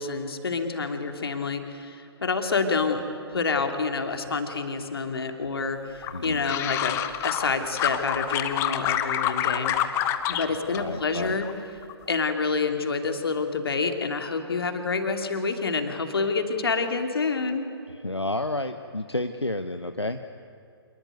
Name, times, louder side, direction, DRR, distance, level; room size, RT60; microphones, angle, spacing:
voice 1, 0.0-3.0 3.3-9.7 10.3-11.5 12.1-17.6, left 4 dB, 60° left, 5 dB, 2.9 m, -28 dB
sound 1, 6.0-7.5 7.8-10.5 10.7-11.5 11.8-12.3, left 11 dB, 20° left, 1.0 m, -27 dB
voice 2, 6.1-6.4 10.7-11.4 17.9-20.2, left 2 dB, 90° left, 8 dB, 1.0 m, -30 dB
26.5 x 20.5 x 9.4 m, 2.5 s
figure-of-eight pair, 125°, 14 cm